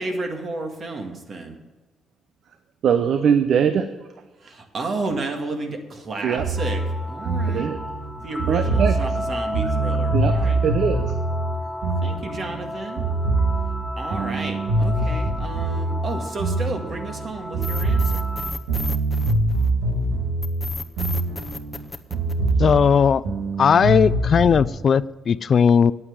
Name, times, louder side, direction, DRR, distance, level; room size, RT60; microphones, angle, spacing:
voice 1, 0.0-1.6 4.4-7.7 8.2-10.6 12.0-13.0 14.0-18.2, right 3 dB, 45° right, 4 dB, 1.9 m, -32 dB
voice 2, 2.8-3.9 6.2-6.4 7.5-7.8 8.5-8.9 10.1-10.3 10.6-11.1, right 7 dB, 65° right, 9 dB, 0.7 m, -21 dB
sound 1, 6.4-12.7 13.0-17.3 17.5-21.8 22.1-24.7, right 2 dB, 85° right, 1.9 m, -24 dB
sound 2, 6.6-18.5, left 2 dB, ahead, 1.2 m, -34 dB
sound 3, 17.6-19.9 20.4-22.9, left 2 dB, 15° left, 0.7 m, -33 dB
voice 3, 22.6-23.2 23.6-25.9, left 7 dB, 50° left, 19 dB, 0.3 m, -17 dB
9.3 x 8.7 x 6.6 m, 1.2 s
cardioid pair, 90°, 0 cm